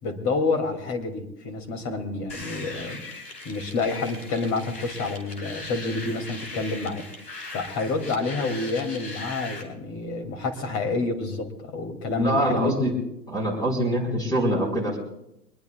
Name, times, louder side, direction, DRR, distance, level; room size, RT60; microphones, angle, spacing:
voice 1, 0.0-3.0 3.4-7.1 7.5-12.7, left 3 dB, 25° left, 5 dB, 2.6 m, -28 dB
sound 1, 2.3-9.6, left 3 dB, 75° left, 4.4 m, -39 dB
voice 2, 12.2-13.0 13.3-15.0, right 1 dB, 5° left, 3 dB, 4.4 m, -24 dB
24.5 x 20.5 x 2.3 m, 0.84 s
figure-of-eight pair, 115°, 49 cm